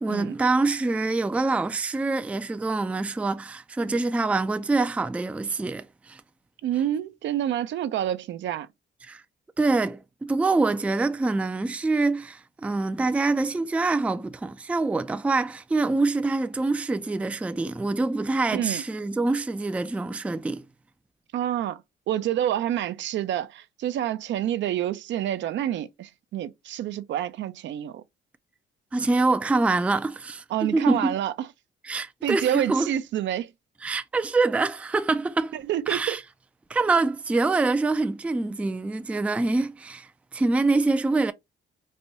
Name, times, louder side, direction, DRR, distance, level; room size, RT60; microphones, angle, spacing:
voice 1, 0.0-6.2 9.0-9.2 9.6-20.6 28.9-31.1 31.8-32.9 33.8-35.5 35.9-36.2 36.7-41.3, right 3 dB, 5° right, 0.3 m, -25 dB
voice 2, 6.6-8.7 18.5-18.8 21.3-21.8 22.1-28.0 30.5-31.5 32.2-33.5 35.5-36.2, right 11 dB, 65° right, 0.5 m, -28 dB
4.2 x 2.2 x 2.7 m
cardioid pair, 90°, 20 cm